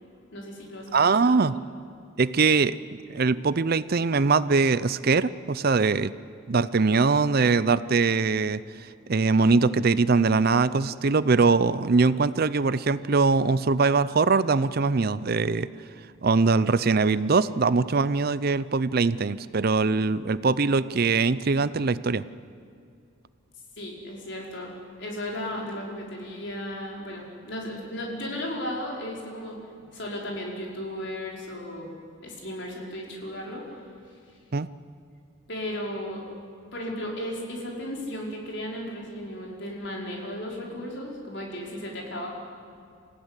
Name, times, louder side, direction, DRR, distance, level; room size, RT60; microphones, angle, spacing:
voice 1, 0.3-1.4 23.7-31.9 32.2-34.4 35.5-36.2 36.7-42.3, left 1 dB, 60° left, -1 dB, 5.0 m, -35 dB
voice 2, 0.9-1.5 2.2-6.1 6.5-15.7 16.2-22.2 34.5-34.7, right 4 dB, 45° right, 16 dB, 0.5 m, -22 dB
26.5 x 15.5 x 9.9 m, 2.4 s
head